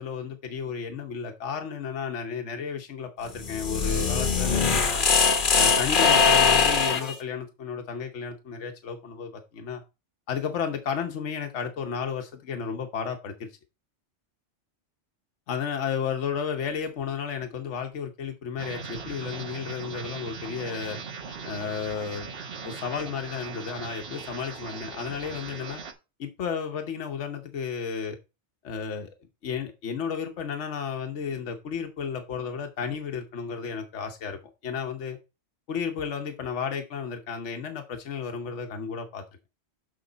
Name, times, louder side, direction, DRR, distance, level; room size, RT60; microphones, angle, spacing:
voice 1, 0.0-5.1 5.5-9.8 10.3-13.5 15.5-21.0 21.4-22.3 22.6-25.8 26.2-28.2 28.6-29.1 29.4-35.2 35.7-39.2, left 6 dB, 80° left, 1.2 m, -33 dB
sound 1, 3.3-7.1, left 5 dB, 50° left, 1.1 m, -21 dB
sound 2, 18.6-25.9, right 5 dB, 55° right, 1.3 m, -39 dB
6.5 x 6.3 x 4.0 m
omnidirectional pair, 1.2 m